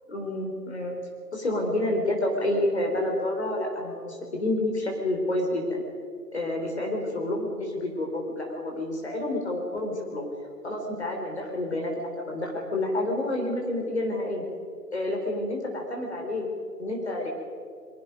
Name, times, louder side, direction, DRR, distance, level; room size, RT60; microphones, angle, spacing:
voice 1, 0.1-1.0 1.3-5.8 6.3-10.3 10.6-12.0 12.3-14.5 14.9-16.5 16.8-17.3, left 1 dB, 40° left, 1 dB, 3.6 m, -29 dB
28.0 x 22.5 x 5.2 m, 2.3 s
figure-of-eight pair, 165°, 48 cm